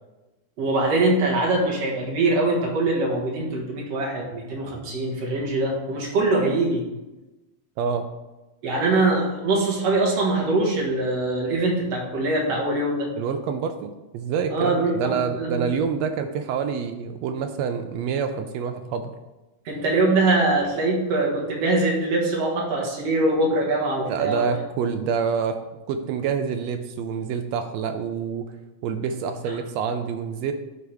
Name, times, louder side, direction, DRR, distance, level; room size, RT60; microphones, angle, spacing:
voice 1, 0.6-6.8 8.6-13.1 14.5-15.7 19.7-24.5, right 2 dB, 60° right, -3 dB, 2.6 m, -23 dB
voice 2, 7.8-8.1 13.2-19.1 24.1-25.6 25.9-28.5 28.8-30.5, right 6 dB, 80° right, 7 dB, 1.6 m, -27 dB
11.5 x 4.8 x 3.5 m, 1.1 s
omnidirectional pair, 3.4 m